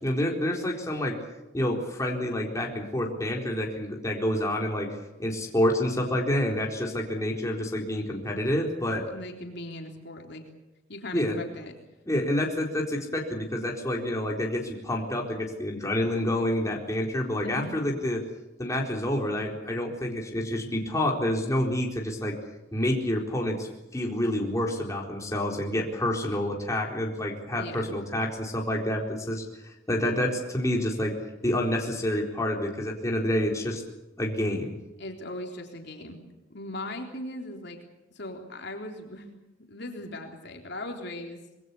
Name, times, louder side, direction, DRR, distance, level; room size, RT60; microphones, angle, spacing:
voice 1, 0.0-1.2 1.5-4.9 5.2-9.0 11.1-11.4 12.1-18.2 18.6-22.4 22.7-23.7 23.9-31.1 31.4-33.8 34.2-34.7, left 1 dB, 15° left, 0 dB, 4.1 m, -28 dB
voice 2, 9.1-10.4 10.9-11.8 17.4-17.8 27.5-27.9 35.0-37.8 38.1-39.3 39.7-41.4, left 1 dB, 60° left, 2 dB, 3.7 m, -39 dB
26.0 x 22.5 x 7.0 m, 0.97 s
head